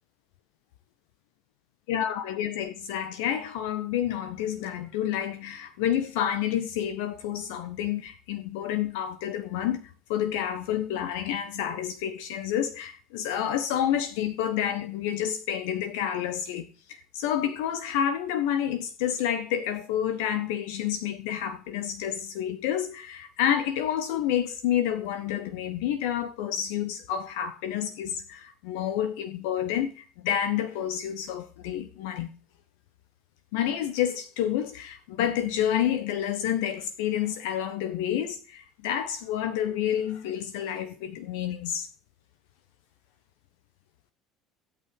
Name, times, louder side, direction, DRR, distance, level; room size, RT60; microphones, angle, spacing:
voice 1, 1.9-32.3 33.5-41.9, left 10 dB, 65° left, 1.1 m, -29 dB
15.5 x 8.6 x 5.3 m
figure-of-eight pair, 60°, 0 cm